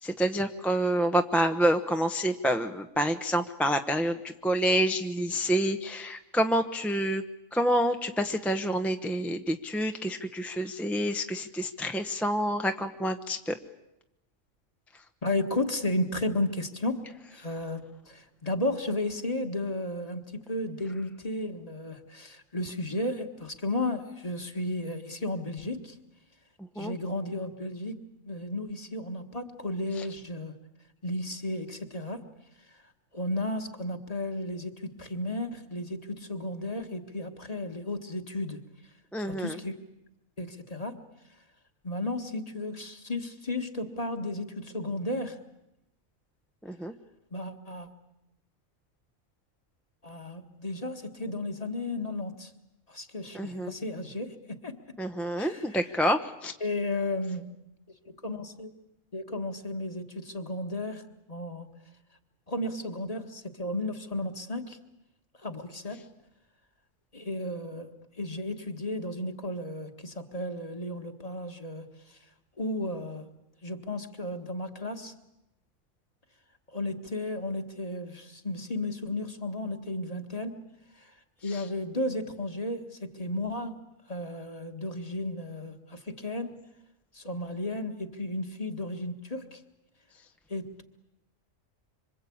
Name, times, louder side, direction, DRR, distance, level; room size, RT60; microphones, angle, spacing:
voice 1, 0.0-7.2 7.5-13.6 26.8-26.9 30.0-30.1 39.1-39.6 46.6-46.9 53.3-53.7 55.0-56.5 81.5-81.6, equal, ahead, 6 dB, 0.8 m, -28 dB
voice 2, 15.2-26.0 26.8-30.5 31.0-32.2 33.1-38.6 39.2-39.8 40.4-41.0 41.8-45.4 47.3-47.9 50.0-52.5 52.9-54.8 55.4-55.8 56.6-57.5 58.1-58.7 59.1-61.0 61.3-61.7 62.5-64.8 65.4-66.0 67.1-67.9 68.2-72.2 72.6-73.3 73.6-75.1 76.7-80.6 81.0-81.1 81.4-83.8 84.1-86.6 87.1-89.6 90.5-90.8, left 1 dB, 25° left, 6 dB, 1.7 m, -34 dB
26.0 x 25.5 x 8.6 m, 0.90 s
omnidirectional pair, 1.4 m